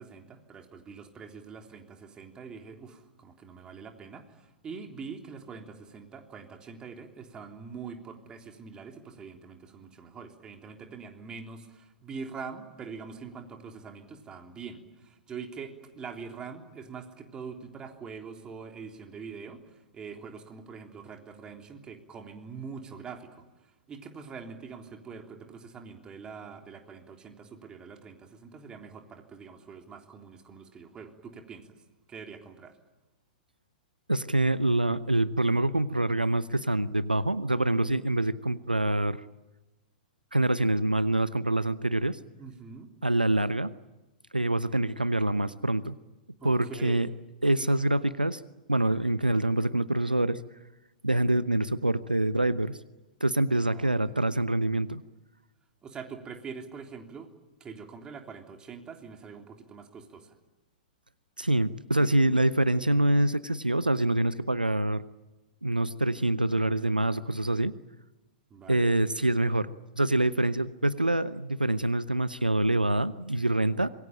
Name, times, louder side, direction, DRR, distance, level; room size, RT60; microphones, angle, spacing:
voice 1, 0.0-23.5 23.9-31.7 32.1-32.8 42.4-42.9 46.4-47.1 53.6-54.0 55.8-57.3 57.6-60.3 68.5-69.0, right 5 dB, 20° right, 4 dB, 3.5 m, -44 dB
voice 2, 34.1-39.2 40.3-42.2 43.0-43.7 44.3-46.0 46.4-47.1 47.4-48.4 48.7-50.4 51.0-52.8 53.2-55.0 61.4-65.0 65.6-67.7 68.7-69.7 70.0-73.9, right 1 dB, 85° right, 16 dB, 0.9 m, -25 dB
26.0 x 22.5 x 8.9 m, 1.1 s
figure-of-eight pair, 105°, 5 cm